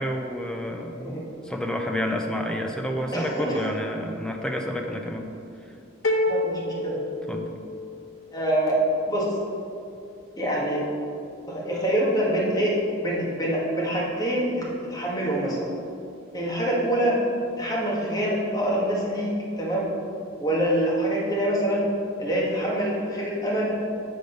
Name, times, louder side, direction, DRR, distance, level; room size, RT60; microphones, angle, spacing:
voice 1, 0.0-5.3 7.3-7.5, equal, 5° left, 2 dB, 0.5 m, -29 dB
voice 2, 3.1-3.7 6.3-7.0 8.3-8.8 9.1-9.3 10.4-10.9 11.5-14.6 14.9-15.7 16.3-17.2 17.6-19.9 20.4-21.8 22.2-23.8, right 1 dB, 20° left, -5 dB, 1.7 m, -25 dB
sound 1, 6.0-8.0, left 1 dB, 90° left, 0.9 m, -27 dB
7.8 x 5.1 x 5.3 m, 2.5 s
head